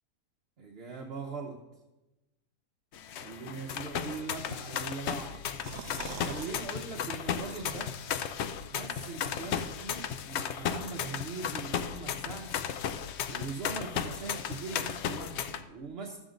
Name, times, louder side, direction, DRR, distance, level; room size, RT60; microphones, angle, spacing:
voice 1, 0.6-1.6 3.2-5.4 6.2-7.9 8.7-12.6 13.3-16.2, right 4 dB, 45° right, 1 dB, 0.9 m, -41 dB
sound 1, 2.9-15.6, left 8 dB, 85° left, 0.6 m, -35 dB
sound 2, 5.3-6.6 6.9-7.0 7.4-8.1, right 9 dB, 80° right, 0.6 m, -44 dB
13.0 x 7.5 x 3.8 m, 1.1 s
omnidirectional pair, 1.7 m